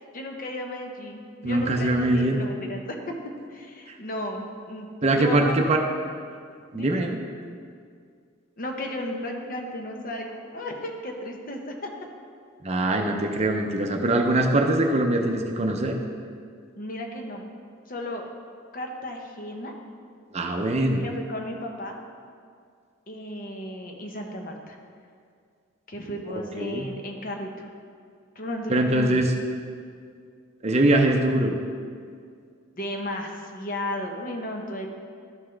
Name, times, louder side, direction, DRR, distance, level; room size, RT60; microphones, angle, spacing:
voice 1, 0.1-3.1 3.5-5.8 6.7-6.9 8.6-11.7 16.8-17.5 17.9-18.2 18.7-19.7 21.0-22.0 23.1-24.8 25.9-27.7 28.4-29.2 32.8-34.9, left 1 dB, 45° left, 2 dB, 0.9 m, -34 dB
voice 2, 1.4-2.4 5.0-5.8 6.7-7.2 12.6-16.0 20.3-21.0 26.3-26.9 28.7-29.3 30.6-31.5, right 1 dB, 35° right, 3 dB, 0.6 m, -22 dB
12.5 x 5.8 x 3.3 m, 2.2 s
head